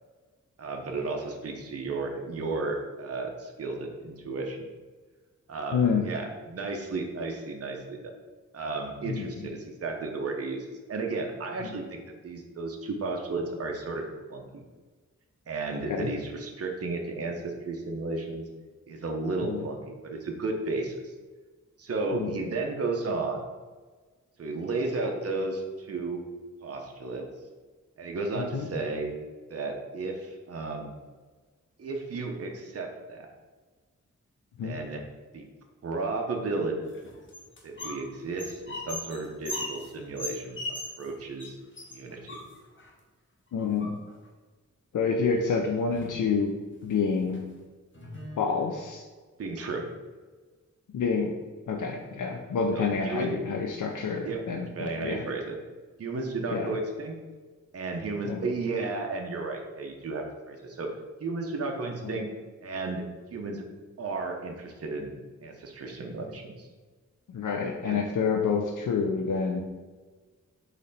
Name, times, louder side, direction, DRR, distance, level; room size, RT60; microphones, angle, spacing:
voice 1, 0.6-4.6 5.5-8.1 8.5-14.0 14.3-14.6 15.5-18.5 18.9-21.0 21.8-23.4 24.4-26.2 26.6-27.2 28.0-29.1 29.5-30.9 31.8-33.3 34.6-35.0 35.3-35.4 35.8-36.9 37.6-40.6 41.0-41.6 41.9-42.4 49.4-49.8 52.7-53.3 54.2-54.4 54.7-55.6 56.0-57.2 57.7-60.9 61.2-62.3 62.6-63.0 63.3-63.6 64.0-65.2 65.4-66.7 67.8-68.0, right 3 dB, 50° right, 2 dB, 0.7 m, -33 dB
voice 2, 5.7-6.1 9.1-9.5 11.6-11.7 15.9-16.1 19.4-19.6 22.1-22.3 28.4-28.7 34.6-34.8 43.5-44.0 44.9-46.5 46.8-47.4 48.4-49.0 50.9-51.4 51.7-55.3 56.5-56.7 58.3-58.4 62.0-62.2 67.3-69.6, left 5 dB, 75° left, 2 dB, 0.5 m, -28 dB
sound 1, 36.9-38.0 38.3-41.1 41.4-41.5 41.8-42.9 43.6-44.2 45.3-45.4 45.7-46.2 46.7-46.9 47.3-47.4 47.9-48.8, left 1 dB, 40° left, 0.9 m, -39 dB
3.9 x 3.2 x 4.0 m, 1.4 s
wide cardioid pair, 85°, 31 cm